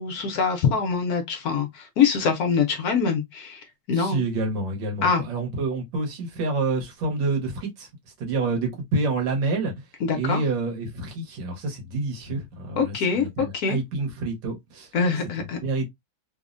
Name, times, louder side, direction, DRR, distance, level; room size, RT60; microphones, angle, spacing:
voice 1, 0.0-4.2 5.0-5.2 10.0-10.4 12.8-13.8 14.9-15.6, left 6 dB, 70° left, 1.0 m, -24 dB
voice 2, 3.9-7.9 8.2-9.7 10.1-14.9 15.6-15.9, right 3 dB, 85° right, 1.7 m, -28 dB
3.4 x 2.0 x 2.4 m
omnidirectional pair, 2.0 m